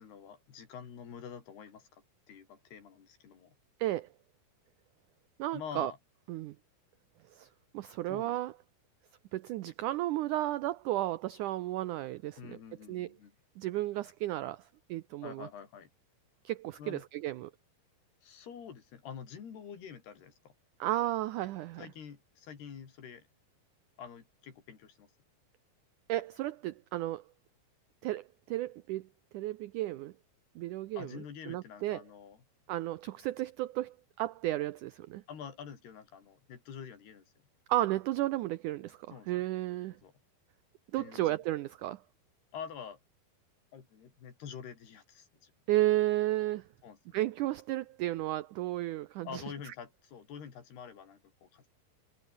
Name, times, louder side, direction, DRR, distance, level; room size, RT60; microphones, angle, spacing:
voice 1, 0.0-3.6 5.5-6.0 8.1-8.3 12.4-13.4 15.2-15.9 16.8-17.0 18.2-20.5 21.8-23.3 24.0-25.1 31.0-32.4 35.3-37.3 39.1-39.4 40.0-40.1 41.0-41.4 42.5-43.0 43.7-45.5 46.8-47.0 49.3-51.7, left 7 dB, 90° left, 5.8 m, -47 dB
voice 2, 5.4-5.9 6.3-6.6 7.4-7.5 7.7-8.5 9.3-12.4 12.9-13.1 13.6-14.6 14.9-15.5 16.4-17.5 20.8-21.9 26.1-27.2 28.0-29.1 29.3-30.1 30.6-31.1 31.5-32.0 32.7-35.2 37.7-40.0 40.9-42.0 45.7-46.6 47.1-49.4, right 15 dB, 90° right, 1.7 m, -33 dB
omnidirectional pair, 4.5 m